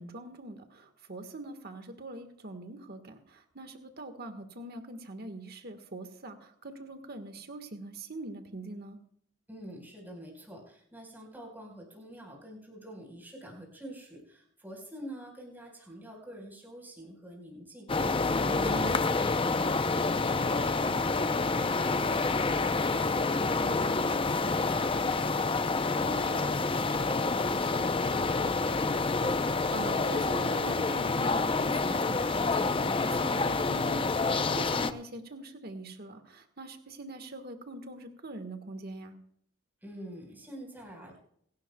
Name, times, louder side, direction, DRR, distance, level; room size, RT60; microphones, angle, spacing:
voice 1, 0.0-9.0 18.5-19.0 26.2-26.4 29.7-39.1, right 2 dB, 50° right, 7 dB, 1.5 m, -43 dB
voice 2, 9.5-26.5 26.7-28.8 39.8-41.2, equal, 10° right, -1 dB, 4.6 m, -47 dB
sound 1, 17.9-34.9, left 3 dB, 25° left, 0.6 m, -28 dB
27.0 x 12.0 x 2.3 m, 0.68 s
head